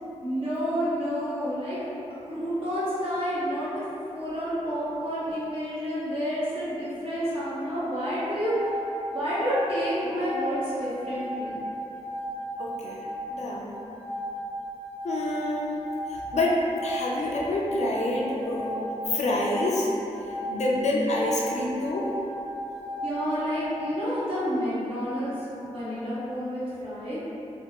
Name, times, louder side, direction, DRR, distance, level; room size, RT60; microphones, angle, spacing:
voice 1, 0.2-1.8 2.3-3.8 4.1-8.5 9.1-11.6 23.0-25.3 25.6-27.2, equal, 50° right, -12 dB, 1.3 m, -29 dB
sound 1, 7.9-23.7, equal, 20° left, 0.6 m, -36 dB
voice 2, 12.6-13.8 15.0-15.8 16.1-19.9 20.5-22.1, left 1 dB, 70° left, -3 dB, 0.4 m, -27 dB
3.3 x 2.2 x 2.9 m, 2.8 s
wide cardioid pair, 110°, 12 cm